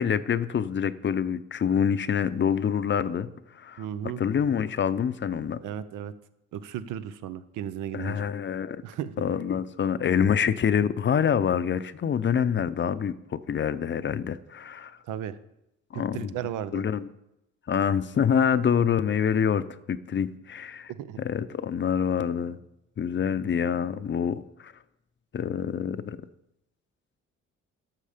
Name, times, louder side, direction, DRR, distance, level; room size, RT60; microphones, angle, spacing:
voice 1, 0.0-3.3 3.5-3.8 4.2-5.6 7.9-8.8 9.2-15.0 15.9-16.3 16.7-17.1 17.7-20.9 21.2-22.6 23.0-24.7 25.3-26.2, left 7 dB, 40° left, 14 dB, 0.6 m, -26 dB
voice 2, 3.8-4.2 5.6-6.1 6.5-8.2 8.8-9.1 15.1-15.4 15.9-16.8 20.9-21.2, right 10 dB, 90° right, 13 dB, 0.7 m, -35 dB
12.0 x 6.8 x 5.1 m, 0.85 s
cardioid pair, 90°, 30 cm